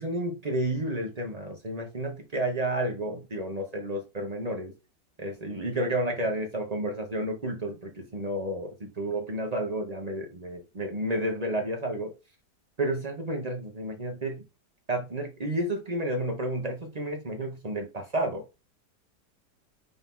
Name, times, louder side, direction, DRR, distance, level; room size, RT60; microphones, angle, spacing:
voice 1, 0.0-4.7 5.2-12.1 12.8-14.4 14.9-18.4, right 1 dB, 35° right, 0.7 m, -31 dB
5.3 x 2.8 x 3.5 m
omnidirectional pair, 1.8 m